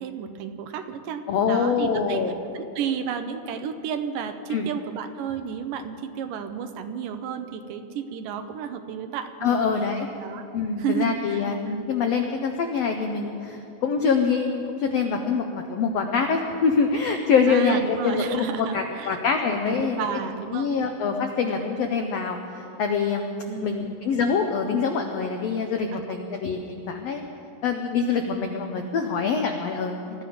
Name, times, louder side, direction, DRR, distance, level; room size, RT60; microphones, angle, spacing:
voice 1, 0.0-2.2 2.5-9.7 10.2-10.5 10.8-11.4 17.5-19.2 19.4-20.7 23.5-23.9 25.9-26.2, right 7 dB, 75° right, 8 dB, 2.3 m, -32 dB
voice 2, 1.3-2.3 4.5-4.7 9.4-10.1 10.5-20.0 20.5-23.3 23.6-27.2 27.6-30.2, left 5 dB, 90° left, 4 dB, 1.4 m, -25 dB
21.5 x 13.0 x 5.1 m, 2.7 s
omnidirectional pair, 4.0 m